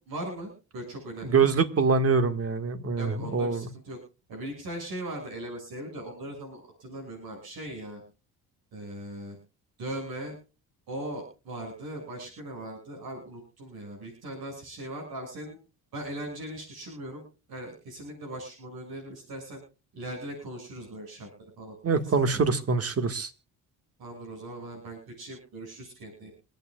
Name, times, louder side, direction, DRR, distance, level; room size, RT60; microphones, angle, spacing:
voice 1, 0.0-1.4 3.0-4.0 4.3-8.0 8.7-9.4 9.8-10.3 10.9-15.6 15.9-19.6 19.9-21.3 21.6-22.1 24.0-26.3, right 1 dB, 70° right, 2 dB, 7.4 m, -39 dB
voice 2, 1.2-3.6 21.8-23.3, right 5 dB, 40° right, 10 dB, 1.9 m, -24 dB
27.0 x 9.2 x 2.4 m, 0.33 s
cardioid pair, 105°, 38 cm